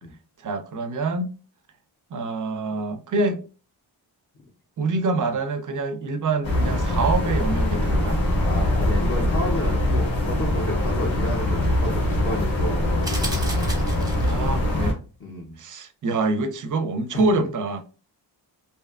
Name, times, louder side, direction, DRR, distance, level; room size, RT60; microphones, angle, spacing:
voice 1, 0.4-1.4 2.1-3.4 4.8-8.2 14.2-15.0 15.6-17.8, right 3 dB, 45° right, 0.4 m, -26 dB
sound 1, 6.4-14.9, left 1 dB, 85° left, 1.1 m, -23 dB
voice 2, 8.4-13.3 15.2-15.6, left 1 dB, 30° left, 0.5 m, -32 dB
sound 2, 13.0-14.5, right 1 dB, 10° right, 0.6 m, -34 dB
2.6 x 2.3 x 2.3 m
wide cardioid pair, 100°, 44 cm